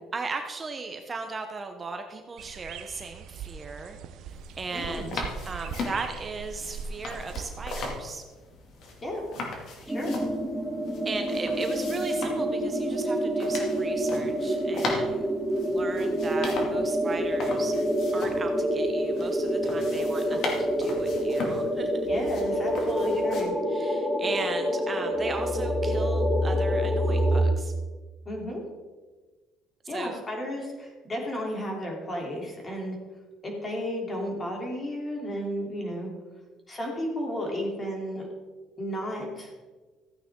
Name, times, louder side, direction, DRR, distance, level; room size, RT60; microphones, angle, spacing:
voice 1, 0.1-4.0 4.3-8.2 11.0-15.3 15.6-17.7 18.1-21.9 23.7-27.7 29.9-30.2, right 4 dB, 25° right, 5 dB, 0.9 m, -37 dB
sound 1, 2.4-8.0, right 6 dB, 70° right, 0.7 m, -40 dB
sound 2, 4.3-23.4, left 3 dB, 60° left, 2.4 m, -39 dB
voice 2, 4.7-5.2 9.0-9.2 9.9-10.2 22.1-23.5 28.2-28.6 29.9-33.0 33.4-36.1 36.7-38.2 38.8-39.5, equal, 25° left, -1 dB, 3.3 m, -33 dB
sound 3, 9.9-27.4, equal, 10° right, 1.5 m, -27 dB
14.5 x 8.9 x 3.8 m, 1.3 s
cardioid pair, 120°, 0 cm